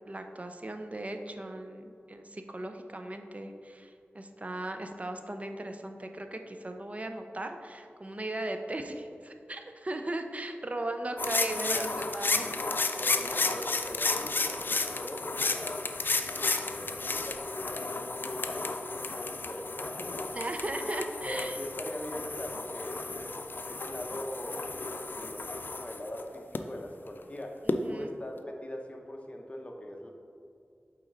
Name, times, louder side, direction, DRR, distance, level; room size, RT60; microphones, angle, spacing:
voice 1, 0.1-12.5 20.3-21.6 27.7-28.1, right 1 dB, 35° right, 6 dB, 0.5 m, -37 dB
sound 1, 11.2-26.6 27.7-27.8, left 3 dB, 55° left, 0.4 m, -33 dB
voice 2, 13.0-15.9 16.5-20.3 21.2-27.6 27.9-30.1, left 1 dB, 30° left, 2 dB, 0.8 m, -41 dB
8.1 x 4.1 x 3.8 m, 2.4 s
wide cardioid pair, 65°, 4 cm